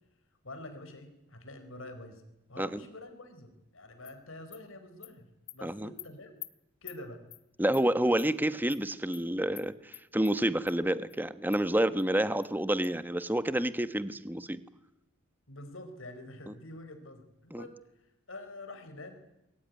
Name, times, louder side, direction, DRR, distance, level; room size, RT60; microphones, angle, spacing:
voice 1, 0.4-2.2 2.5-6.3 6.8-7.2 15.5-17.8 18.3-19.2, left 1 dB, 75° left, 8 dB, 4.6 m, -46 dB
Animal, 4.0-4.1 4.5-4.6 5.0-5.1 5.5-5.6 6.0-6.1 6.4-6.5 6.9-7.0 7.3-7.4 7.7-7.8 8.2-8.3 8.7-8.8 9.1-9.2 9.6-9.7 9.9-10.3 10.7-10.8 11.1-11.2 11.5-11.6 12.0-12.1 12.4-12.5 12.8-12.9, left 17 dB, 60° left, 1.3 m, -46 dB
voice 2, 5.6-5.9 7.6-14.6 16.5-16.6 17.5-17.7, right 1 dB, 10° right, 12 dB, 1.2 m, -29 dB
27.0 x 22.5 x 9.6 m, 0.90 s
head